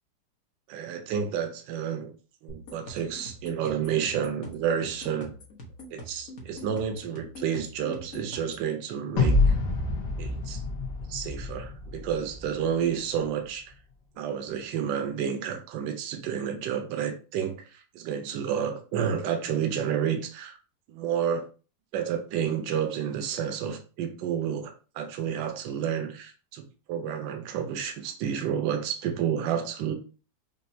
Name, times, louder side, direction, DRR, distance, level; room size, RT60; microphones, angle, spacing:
voice 1, 0.7-2.1 2.4-5.3 5.9-9.6 10.2-10.6 11.1-13.7 14.2-20.6 20.9-21.5 21.9-29.9, right 8 dB, 75° right, 1.3 m, -30 dB
sound 1, 2.5-8.7, left 1 dB, 50° left, 1.3 m, -44 dB
sound 2, 9.2-12.5, left 3 dB, 65° left, 1.5 m, -26 dB
5.4 x 2.6 x 2.6 m
omnidirectional pair, 2.1 m